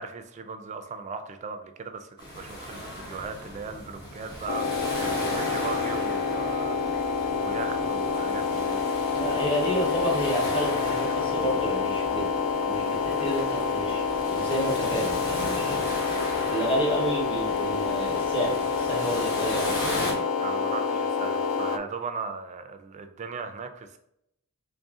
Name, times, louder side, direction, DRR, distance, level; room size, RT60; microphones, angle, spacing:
voice 1, 0.0-8.9 20.4-24.0, right 5 dB, 30° right, 0.3 m, -38 dB
sound 1, 2.2-20.1, equal, 50° left, 1.1 m, -37 dB
sound 2, 4.5-21.8, left 5 dB, 65° left, 0.3 m, -28 dB
voice 2, 9.1-12.3 12.6-16.1 16.5-19.7, equal, 25° left, 1.0 m, -30 dB
3.3 x 2.6 x 3.5 m
head